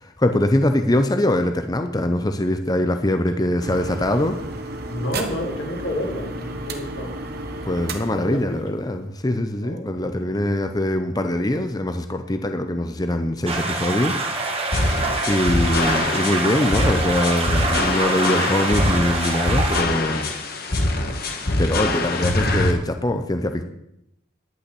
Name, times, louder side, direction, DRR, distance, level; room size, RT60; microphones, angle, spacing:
voice 1, 0.0-4.4 7.6-14.2 15.2-20.3 21.6-23.6, left 1 dB, 20° left, 7 dB, 0.7 m, -23 dB
sound 1, 3.6-9.1, right 2 dB, 50° right, 1.3 m, -33 dB
voice 2, 4.9-7.2 8.2-8.6 9.6-9.9, left 1 dB, 65° left, -1 dB, 3.3 m, -29 dB
sound 2, 13.5-19.8, right 2 dB, 30° right, 1.6 m, -25 dB
sound 3, 14.7-22.7, left 2 dB, 50° left, 1.5 m, -24 dB
11.0 x 5.8 x 8.3 m, 0.80 s
head